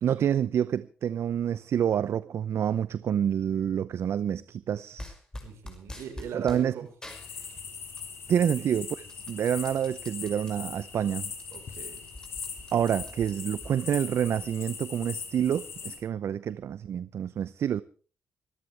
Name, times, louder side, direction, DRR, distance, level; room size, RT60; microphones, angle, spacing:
voice 1, 0.0-5.1 6.3-6.7 8.3-8.9 9.1-11.3 12.7-17.8, right 9 dB, 70° right, 0.7 m, -28 dB
sound 1, 5.0-6.6 7.0-8.1 8.5-10.5 11.0-11.1 11.3-13.7, left 1 dB, 15° left, 6.0 m, -45 dB
voice 2, 5.4-6.8 8.6-8.7 11.5-12.0, right 7 dB, 85° right, 4.6 m, -40 dB
sound 2, 7.1-16.0, left 6 dB, 60° left, 4.9 m, -40 dB
25.5 x 13.5 x 3.4 m
cardioid pair, 75°, 5 cm